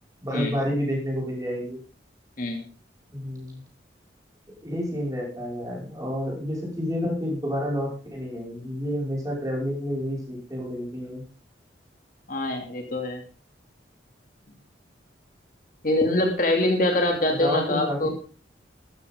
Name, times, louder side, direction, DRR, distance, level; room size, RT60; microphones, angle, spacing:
voice 1, 0.2-1.8 3.1-3.6 4.6-11.2 17.4-18.1, equal, 20° right, -2 dB, 5.7 m, -29 dB
voice 2, 12.3-13.2 15.8-18.1, left 1 dB, 45° left, 2 dB, 2.7 m, -24 dB
14.0 x 13.0 x 3.8 m, 0.38 s
head